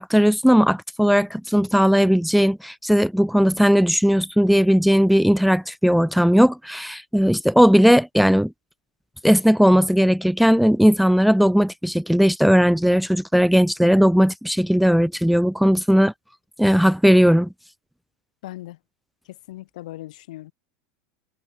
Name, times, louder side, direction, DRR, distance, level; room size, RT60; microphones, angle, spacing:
voice 1, 0.0-8.5 9.2-16.1 16.6-17.5, equal, ahead, 0.6 m, -17 dB
voice 2, 18.4-18.8 19.2-20.5, left 16 dB, 80° left, 5.8 m, -38 dB
supercardioid pair, 120°, 4 cm